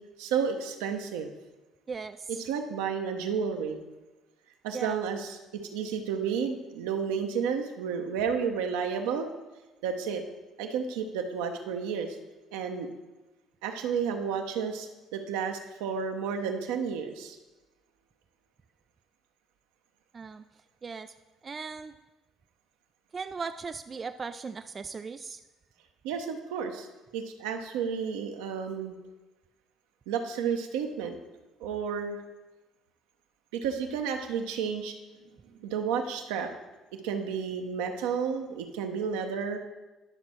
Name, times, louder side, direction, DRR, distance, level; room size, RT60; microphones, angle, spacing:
voice 1, 0.2-1.3 2.3-3.8 4.6-9.3 9.8-10.2 10.6-12.2 12.5-12.9 13.6-17.4 26.0-26.9 27.1-29.0 30.1-31.1 31.6-32.2 33.5-34.9 35.6-36.5 37.0-39.6, right 6 dB, 75° right, 4 dB, 0.8 m, -31 dB
voice 2, 1.9-2.4 4.7-5.0 20.1-20.4 20.8-21.1 21.4-21.9 23.1-25.4, right 5 dB, 35° right, 9 dB, 0.3 m, -38 dB
11.0 x 6.0 x 4.3 m, 1.1 s
hypercardioid pair, 55°, 0 cm